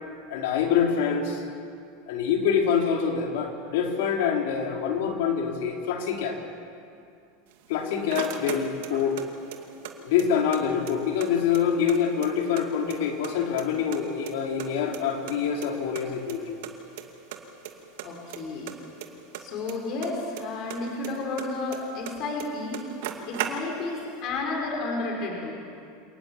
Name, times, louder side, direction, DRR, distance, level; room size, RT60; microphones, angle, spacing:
voice 1, 0.3-1.4 2.1-6.4 7.7-9.2 10.0-16.6, left 7 dB, 75° left, 1 dB, 4.0 m, -25 dB
sound 1, 7.5-9.2 9.5-10.6 10.9-11.0 11.2-12.6 12.9-13.6 13.9-15.4 15.6-15.7 16.0-16.1 16.3-16.4 16.6-17.0 17.3-17.7 18.0-20.4 20.7-22.1 22.4-22.5 22.7-24.0, right 11 dB, 70° right, 2.4 m, -36 dB
voice 2, 18.0-18.7 19.4-22.9 23.2-25.5, left 3 dB, 50° left, 0 dB, 5.5 m, -32 dB
28.0 x 18.5 x 7.4 m, 2.4 s
supercardioid pair, 110°, 0 cm